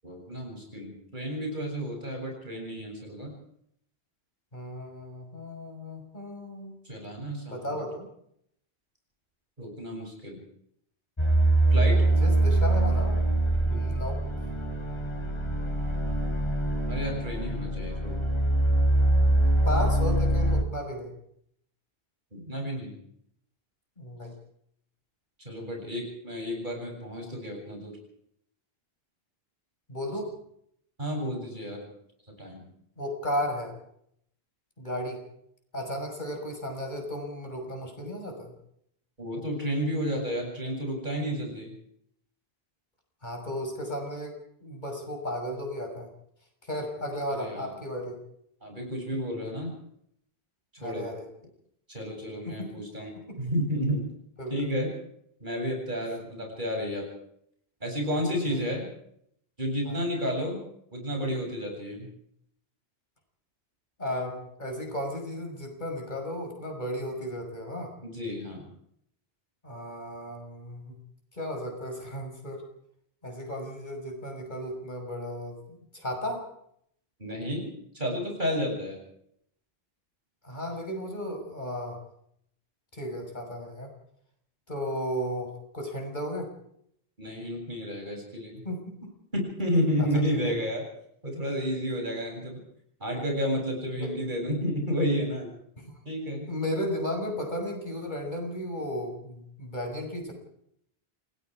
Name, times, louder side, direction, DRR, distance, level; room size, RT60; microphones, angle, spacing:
voice 1, 0.0-3.3 6.8-7.8 9.6-10.4 11.7-12.1 13.7-13.8 16.9-18.3 22.3-23.0 25.4-27.9 31.0-31.9 32.4-32.7 39.2-41.7 47.3-47.7 48.6-49.7 50.8-51.1 51.9-54.1 54.5-54.9 55.4-57.0 57.8-58.9 59.6-60.6 60.9-62.1 68.0-68.7 77.2-77.7 77.9-79.0 87.2-88.6 89.3-90.8 91.2-92.6 93.0-95.5 96.0-96.5, equal, 50° right, 1 dB, 8.1 m, -31 dB
voice 2, 4.5-6.7 7.5-8.1 12.2-13.2 13.6-14.2 19.6-21.1 24.0-24.3 29.9-30.3 33.0-33.7 34.8-35.2 35.7-38.5 43.2-44.3 44.6-46.1 46.6-48.2 50.8-51.2 52.5-52.7 53.2-53.4 54.4-54.5 58.4-58.6 59.9-60.0 64.0-67.9 69.6-71.0 71.3-72.6 73.2-76.4 80.4-82.0 82.9-83.9 84.7-86.5 88.6-89.1 90.0-90.5 94.0-94.1 95.8-95.9 96.5-100.3, equal, 50° left, 2 dB, 6.1 m, -34 dB
sound 1, 11.2-20.6, right 1 dB, 25° left, 2.7 m, -24 dB
28.5 x 19.0 x 4.9 m, 0.70 s
omnidirectional pair, 1.0 m